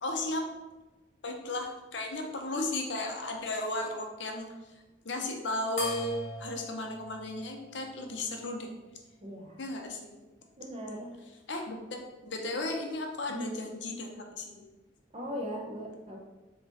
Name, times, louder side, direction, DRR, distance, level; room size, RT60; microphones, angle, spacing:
voice 1, 0.0-0.5 1.2-4.7 5.0-8.7 9.6-10.1 11.5-14.7, left 2 dB, 70° left, 3 dB, 0.6 m, -35 dB
sound 1, 5.8-8.6, left 1 dB, 35° left, 1.2 m, -40 dB
voice 2, 9.2-9.6 10.6-11.1 13.3-13.5 15.1-16.2, equal, 30° right, -1 dB, 0.8 m, -39 dB
4.0 x 3.0 x 4.0 m, 1.1 s
head